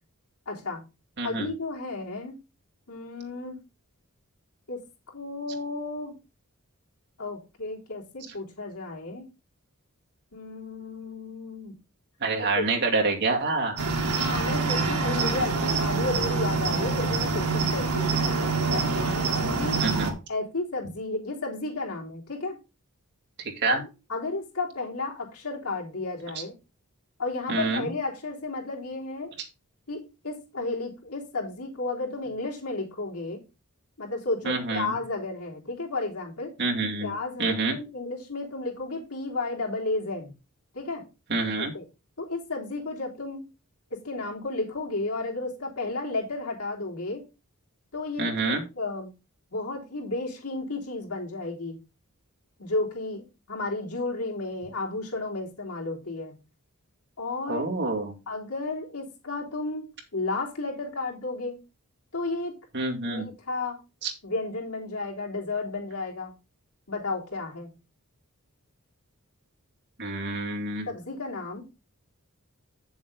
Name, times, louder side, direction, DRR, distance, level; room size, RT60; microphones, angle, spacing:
voice 1, 0.4-0.8 1.2-2.4 2.9-3.6 4.7-6.2 7.2-9.3 10.3-11.8 12.5-12.7 13.9-18.9 19.6-19.8 20.3-22.6 23.7-26.5 27.2-29.3 29.9-33.4 34.0-36.5 37.0-40.3 40.7-41.0 41.6-41.8 42.2-43.5 43.9-47.2 47.9-49.1 49.5-51.8 52.6-56.4 57.2-57.7 58.3-61.6 62.1-62.5 63.0-63.8 64.2-66.3 66.9-67.7 70.9-71.7, left 3 dB, 85° left, -2 dB, 3.4 m, -33 dB
voice 2, 1.2-1.5 12.2-13.8 19.8-20.1 23.6-23.8 27.5-27.9 34.4-34.9 36.6-37.1 37.4-37.8 41.3-41.7 48.2-48.6 57.5-58.1 62.7-63.3 64.0-64.1 70.0-70.9, right 3 dB, 55° right, 1 dB, 2.3 m, -27 dB
Cricket, 13.8-20.1, right 4 dB, 75° right, 2.2 m, -26 dB
8.6 x 7.1 x 3.8 m, 0.29 s
head